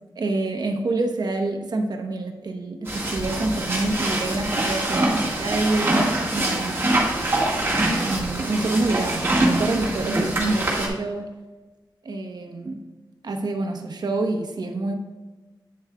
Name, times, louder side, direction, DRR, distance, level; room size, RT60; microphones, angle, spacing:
voice 1, 0.2-6.8 8.0-11.3 12.0-12.8 13.2-14.9, right 2 dB, 60° right, 4 dB, 1.0 m, -27 dB
sound 1, 2.9-10.9, right 1 dB, 30° right, 1.6 m, -24 dB
8.7 x 7.3 x 2.3 m, 1.2 s
wide cardioid pair, 115°, 8 cm